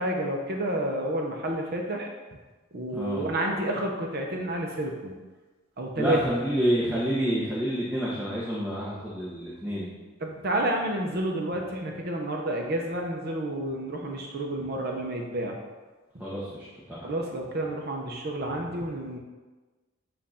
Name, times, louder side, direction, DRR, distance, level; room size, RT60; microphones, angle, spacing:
voice 1, 0.0-2.1 2.7-5.2 5.8-6.2 10.2-15.6 17.0-19.2, right 1 dB, 50° right, 1 dB, 0.7 m, -30 dB
voice 2, 2.9-3.3 6.0-9.9 16.2-17.1, equal, 5° right, -8 dB, 1.0 m, -28 dB
7.4 x 2.6 x 5.6 m, 1.3 s
head